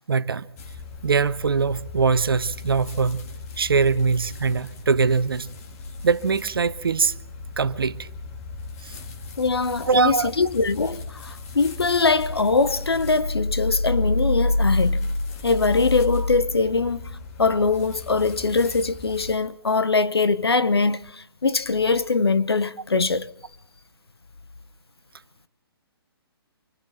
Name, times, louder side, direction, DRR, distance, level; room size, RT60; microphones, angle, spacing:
voice 1, 0.1-0.5 1.0-3.3 3.6-5.5 6.0-7.1 7.6-8.1 8.8-9.0 9.9-10.3, right 5 dB, 60° right, 0.9 m, -22 dB
sound 1, 0.6-19.3, left 2 dB, 35° left, 3.0 m, -31 dB
voice 2, 9.4-15.1 15.4-17.0 17.4-23.3, left 4 dB, 70° left, 0.8 m, -22 dB
26.5 x 25.0 x 4.2 m
figure-of-eight pair, 130°, 13 cm